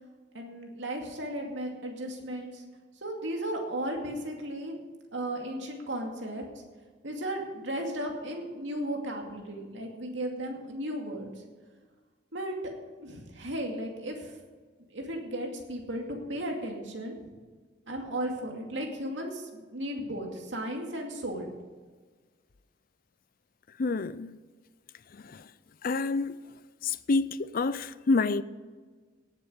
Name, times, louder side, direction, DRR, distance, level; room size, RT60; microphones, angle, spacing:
voice 1, 0.3-2.6 3.0-4.8 5.1-6.4 7.0-11.4 12.3-12.5 13.0-14.4 14.9-17.3 17.9-21.5, right 1 dB, 80° right, 2.4 m, -35 dB
voice 2, 23.8-24.3 25.1-25.5 25.8-26.3 26.8-28.4, left 3 dB, 50° left, 0.5 m, -28 dB
18.0 x 7.4 x 5.1 m
head